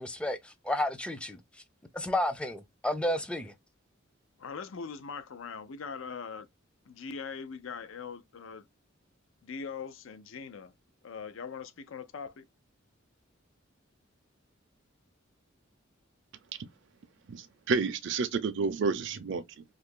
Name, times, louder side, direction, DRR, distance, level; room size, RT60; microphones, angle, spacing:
voice 1, 0.0-1.4 1.9-3.5, left 1 dB, 5° left, 0.4 m, -31 dB
voice 2, 4.4-6.5 6.9-8.7 9.4-10.7 11.0-12.4, left 5 dB, 70° left, 0.5 m, -41 dB
voice 3, 17.3-19.6, right 4 dB, 60° right, 0.4 m, -30 dB
2.7 x 2.4 x 3.6 m
head